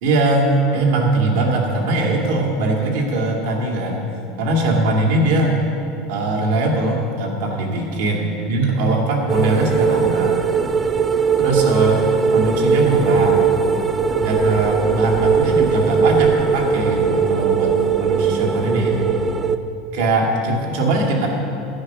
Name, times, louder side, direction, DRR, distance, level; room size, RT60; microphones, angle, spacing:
voice 1, 0.0-4.0 4.4-5.6 6.1-10.4 11.4-12.0 12.3-13.4 14.2-19.0 19.9-21.3, right 2 dB, 70° right, 0 dB, 2.4 m, -20 dB
sound 1, 9.3-19.6, right 6 dB, 15° right, 0.4 m, -19 dB
11.5 x 9.9 x 6.2 m, 2.7 s
supercardioid pair, 170°, 0 cm